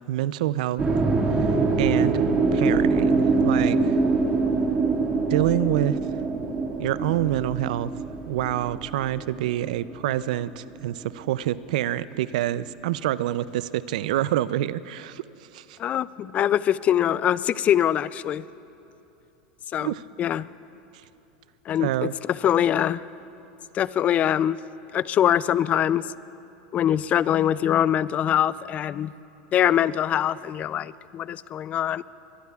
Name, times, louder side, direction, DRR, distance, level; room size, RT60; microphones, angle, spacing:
voice 1, 0.1-0.8 1.8-3.9 5.3-6.0 6.8-7.9 8.3-15.2 15.5-15.8 19.8-20.0 21.8-22.1, right 13 dB, 75° right, 17 dB, 0.4 m, -26 dB
sound 1, 0.8-10.9, right 3 dB, 25° right, 1.8 m, -24 dB
voice 2, 15.8-18.4 19.7-19.9 20.2-20.5 21.7-23.0 23.7-24.6 24.9-26.1 26.7-29.1 29.5-32.0, left 10 dB, 35° left, 19 dB, 0.3 m, -23 dB
22.5 x 22.5 x 2.4 m, 2.8 s
hypercardioid pair, 110°, 4 cm